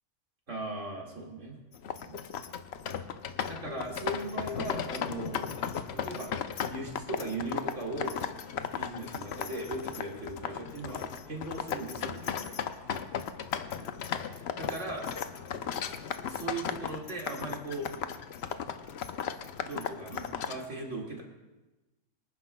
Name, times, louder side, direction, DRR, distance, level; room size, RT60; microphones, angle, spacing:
voice 1, 0.5-1.6 1.9-2.2 3.4-5.6 5.9-6.3 6.7-8.2 8.7-12.6 14.5-15.1 16.3-17.9 19.6-21.2, right 2 dB, 50° right, -1 dB, 2.4 m, -38 dB
sound 1, 1.7-20.7, left 8 dB, 65° left, 0.7 m, -36 dB
25.5 x 9.8 x 2.2 m, 1.1 s
omnidirectional pair, 1.6 m